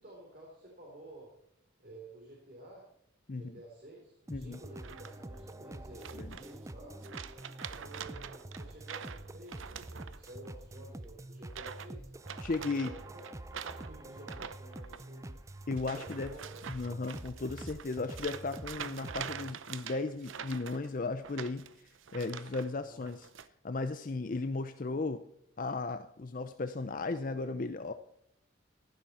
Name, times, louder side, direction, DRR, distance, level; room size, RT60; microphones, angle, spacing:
voice 1, 0.0-1.3 1.8-2.8 3.3-7.0 7.6-12.1 12.7-15.4 15.9-16.6 22.8-23.1, right 1 dB, 50° right, -2 dB, 3.4 m, -52 dB
sound 1, 4.3-19.5, right 1 dB, 15° right, 0.5 m, -47 dB
sound 2, 4.8-5.4 6.0-6.7 7.0-10.5 10.7-11.0 11.5-11.9 12.2-22.7 23.0-23.5, right 7 dB, 90° right, 0.7 m, -45 dB
voice 2, 12.4-12.9 15.7-16.3 16.7-23.3 23.6-25.2 25.6-27.9, left 3 dB, 45° left, 10 dB, 0.5 m, -36 dB
15.0 x 11.5 x 4.2 m, 0.72 s
head